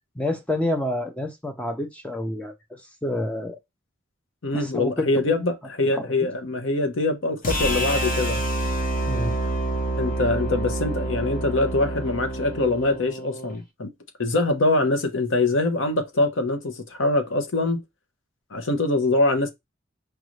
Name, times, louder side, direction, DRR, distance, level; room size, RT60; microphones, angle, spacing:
voice 1, 0.2-2.5 3.0-3.6 4.5-5.1 6.1-6.3 9.1-9.4, left 1 dB, 5° left, 0.5 m, -28 dB
voice 2, 4.4-8.4 10.0-13.9 14.2-17.8 18.5-19.5, left 2 dB, 75° left, 0.9 m, -23 dB
sound 1, 7.4-13.6, right 1 dB, 45° left, 1.2 m, -27 dB
4.7 x 2.6 x 3.1 m
head